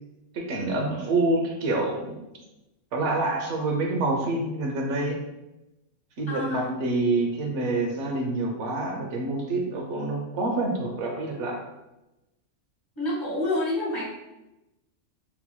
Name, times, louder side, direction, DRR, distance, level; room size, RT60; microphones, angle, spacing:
voice 1, 0.3-2.2 2.9-5.2 6.2-11.6, right 2 dB, 65° right, 1 dB, 1.0 m, -27 dB
voice 2, 6.3-6.7 12.9-14.1, left 1 dB, 20° left, -7 dB, 1.3 m, -28 dB
3.8 x 2.9 x 2.3 m, 0.96 s
omnidirectional pair, 1.4 m